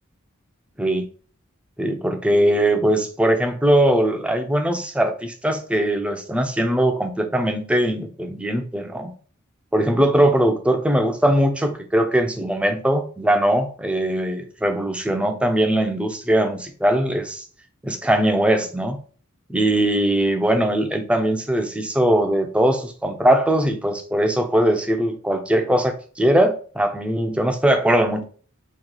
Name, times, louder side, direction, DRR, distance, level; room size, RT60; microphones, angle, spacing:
voice 1, 1.8-9.1 9.7-17.4 17.8-19.0 19.5-28.2, right 1 dB, 5° right, 5 dB, 0.4 m, -20 dB
3.0 x 2.3 x 3.7 m, 0.41 s
head